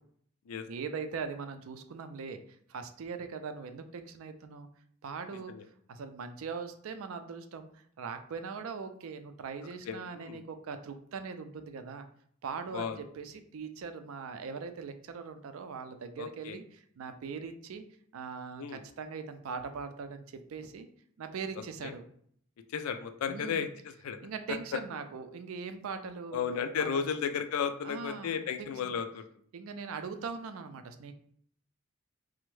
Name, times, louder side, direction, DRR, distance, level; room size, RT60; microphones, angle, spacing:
voice 1, 0.7-2.4 2.7-4.7 5.0-5.5 5.9-7.7 8.0-12.1 12.4-17.8 18.1-20.9 21.2-22.0 23.3-23.7 24.2-26.4 26.8-27.0 27.8-28.9 29.5-31.1, right 5 dB, 75° right, 8 dB, 0.4 m, -41 dB
voice 2, 5.3-5.6 9.9-10.4 12.7-13.0 16.2-16.6 18.6-18.8 21.8-21.9 22.7-24.2 26.3-29.2, left 7 dB, 90° left, 9 dB, 0.3 m, -34 dB
3.4 x 2.0 x 3.1 m, 0.62 s
head